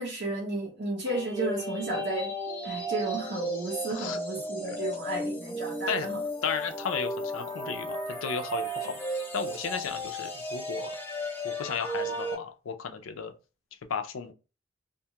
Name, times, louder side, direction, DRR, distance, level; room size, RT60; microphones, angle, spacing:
voice 1, 0.0-2.3 2.6-6.2, right 2 dB, 55° right, 0.6 m, -33 dB
sound 1, 1.0-12.3, equal, 10° left, 0.4 m, -34 dB
voice 2, 6.4-9.0 9.3-11.0 11.4-13.3 13.9-14.3, left 6 dB, 85° left, 0.4 m, -34 dB
2.5 x 2.3 x 2.8 m
head